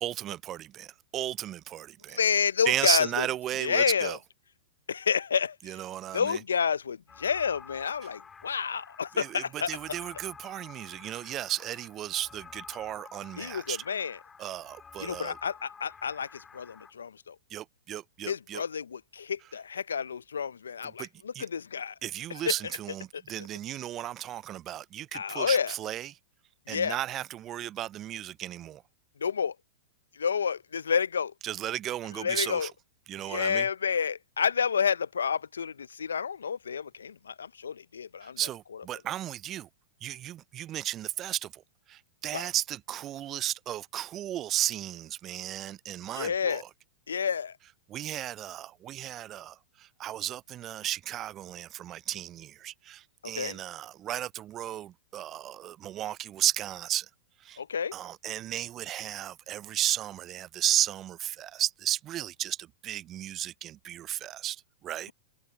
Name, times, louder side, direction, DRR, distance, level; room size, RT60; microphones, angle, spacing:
voice 1, 0.0-2.2 2.7-4.2 5.6-6.4 8.0-8.1 9.1-13.8 14.4-15.4 17.5-18.6 20.8-21.1 21.3-21.5 22.0-26.2 26.7-28.8 31.4-32.7 33.1-33.7 38.2-39.7 40.0-41.6 41.9-46.7 47.9-57.1 57.4-57.6 57.9-65.1, right 12 dB, 30° right, 0.4 m, -34 dB
voice 2, 2.1-3.3 3.6-4.2 4.9-5.6 6.1-9.7 13.4-14.2 15.0-17.3 18.2-21.9 22.5-22.6 23.1-23.2 25.1-25.7 26.7-27.0 29.2-29.5 30.2-31.3 32.2-32.7 33.3-38.4 42.3-42.5 46.1-46.6 47.1-47.5 53.4-53.6 57.6-57.9, left 6 dB, 80° left, 0.6 m, -29 dB
sound 1, 7.1-16.9, left 6 dB, 15° left, 3.5 m, -50 dB
hypercardioid pair, 105°, 0 cm